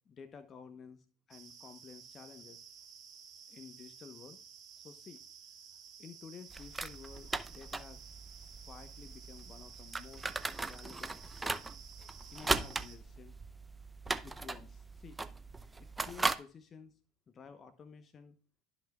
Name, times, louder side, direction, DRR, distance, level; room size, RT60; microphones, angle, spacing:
voice 1, 0.1-2.6 3.5-4.4 4.7-5.2 6.0-8.1 8.6-10.3 10.6-11.7 12.3-13.4 14.2-15.2 15.8-17.0 17.3-18.4, left 6 dB, 35° left, 9 dB, 0.9 m, -53 dB
sound 1, 1.3-13.0, right 7 dB, 45° right, 2.2 m, -54 dB
sound 2, 6.5-16.4, right 3 dB, 15° right, 0.6 m, -38 dB
12.0 x 5.9 x 2.3 m, 0.38 s
hypercardioid pair, 75°, 0 cm